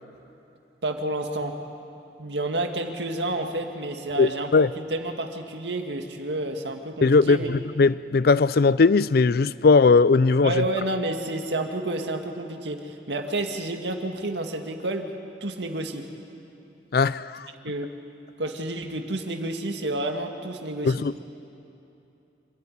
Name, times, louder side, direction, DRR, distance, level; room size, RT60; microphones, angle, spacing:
voice 1, 0.8-1.6 2.2-7.5 10.4-15.1 15.4-16.0 17.6-17.9 18.4-21.0, right 2 dB, 80° right, 1.9 m, -30 dB
voice 2, 4.2-4.7 7.0-10.6 16.9-17.5 20.8-21.1, left 4 dB, 60° left, 0.4 m, -19 dB
26.0 x 13.5 x 9.9 m
head